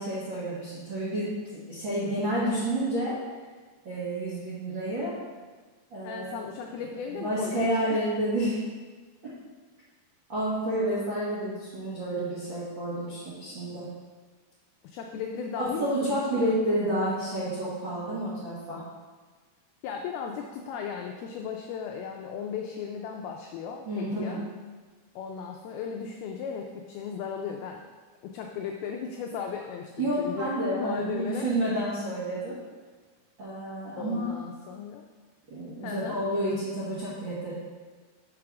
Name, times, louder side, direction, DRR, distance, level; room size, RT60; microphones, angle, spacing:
voice 1, 0.0-3.1 3.8-5.1 5.9-6.5 7.1-8.6 9.2-9.3 10.3-13.9 15.6-18.8 23.9-24.4 30.0-32.6 33.4-34.3 35.5-37.5, right 1 dB, 70° right, -9 dB, 1.1 m, -30 dB
voice 2, 6.0-8.1 14.8-16.6 19.8-24.4 25.2-27.8 28.2-31.5 33.4-33.5 34.0-35.1 35.8-36.2, left 6 dB, 85° left, 2 dB, 2.1 m, -36 dB
6.6 x 4.9 x 5.9 m, 1.4 s
omnidirectional pair, 4.9 m